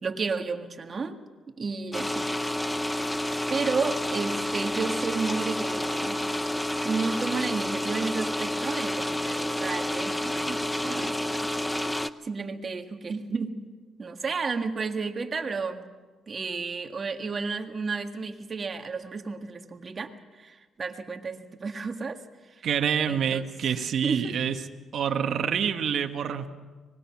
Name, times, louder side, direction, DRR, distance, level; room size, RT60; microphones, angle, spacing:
voice 1, 0.0-1.2 1.6-2.3 3.5-6.3 6.8-13.6 14.0-15.8 16.3-22.7 23.1-24.4, right 4 dB, 40° right, 6 dB, 1.8 m, -32 dB
sound 1, 1.9-12.1, left 1 dB, 5° left, 0.7 m, -29 dB
voice 2, 22.6-24.6 24.9-26.5, right 8 dB, 65° right, 6 dB, 1.3 m, -27 dB
24.5 x 20.5 x 5.9 m, 1.3 s
cardioid pair, 90°, 0 cm